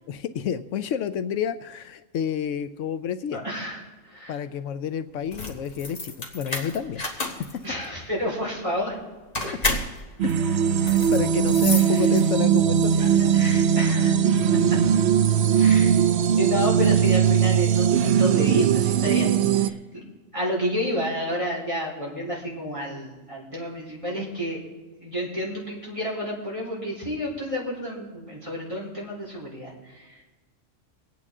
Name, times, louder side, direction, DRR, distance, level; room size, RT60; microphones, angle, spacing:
voice 1, 0.1-3.4 4.3-7.6 9.5-9.8 10.2-13.1 15.7-15.8, left 8 dB, 75° left, 11 dB, 0.9 m, -30 dB
voice 2, 3.3-4.4 7.6-9.0 11.7-12.1 13.0-14.2 14.5-14.8 15.5-15.9 16.2-20.0 20.3-24.6 25.0-30.2, equal, 25° right, -5 dB, 4.2 m, -30 dB
sound 1, 5.2-12.6, left 2 dB, 30° left, 1.6 m, -31 dB
sound 2, 10.2-19.7, right 8 dB, 65° right, 0.8 m, -20 dB
25.0 x 9.0 x 3.7 m, 1.3 s
omnidirectional pair, 1.3 m